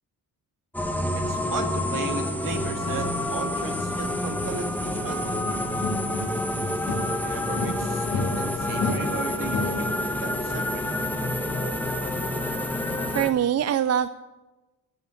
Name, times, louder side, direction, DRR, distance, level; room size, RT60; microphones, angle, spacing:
sound 1, 0.7-13.3, left 1 dB, 5° left, 1.1 m, -28 dB
voice 1, 1.1-5.3 7.1-9.9 10.2-11.1, right 5 dB, 70° right, 5 dB, 2.1 m, -36 dB
sound 2, 5.5-7.2 7.6-10.1, left 3 dB, 60° left, 2.3 m, -31 dB
voice 2, 12.1-12.5 13.1-14.1, right 9 dB, 50° right, 14 dB, 0.4 m, -24 dB
16.0 x 8.8 x 9.4 m, 1.1 s
wide cardioid pair, 175°, 34 cm